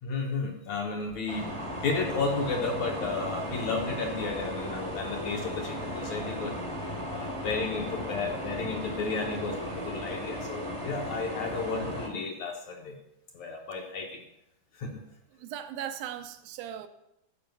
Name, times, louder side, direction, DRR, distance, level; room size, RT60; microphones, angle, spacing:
voice 1, 0.0-6.6 7.1-13.0 13.3-14.2 14.7-15.0, left 4 dB, 65° left, 1 dB, 2.0 m, -33 dB
sound 1, 1.3-12.1, equal, 25° right, 0.7 m, -36 dB
voice 2, 15.3-16.9, right 10 dB, 80° right, 8 dB, 2.4 m, -38 dB
13.0 x 5.0 x 8.0 m, 0.85 s
omnidirectional pair, 4.2 m